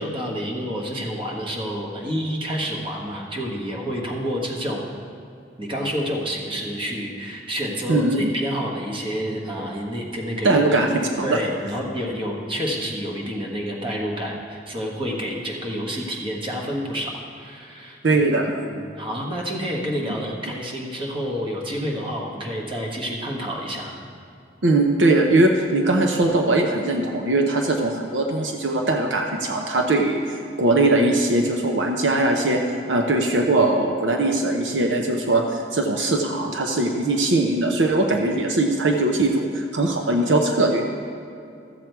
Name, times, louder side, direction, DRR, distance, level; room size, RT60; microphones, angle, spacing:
voice 1, 0.0-4.8 5.6-10.9 11.2-18.2 18.7-23.9, equal, 30° right, -1 dB, 1.4 m, -29 dB
voice 2, 7.9-8.3 10.4-10.9 11.2-11.4 18.0-18.6 24.6-32.6 32.9-40.9, right 2 dB, 70° right, 2 dB, 0.8 m, -20 dB
13.5 x 7.4 x 4.6 m, 2.5 s
head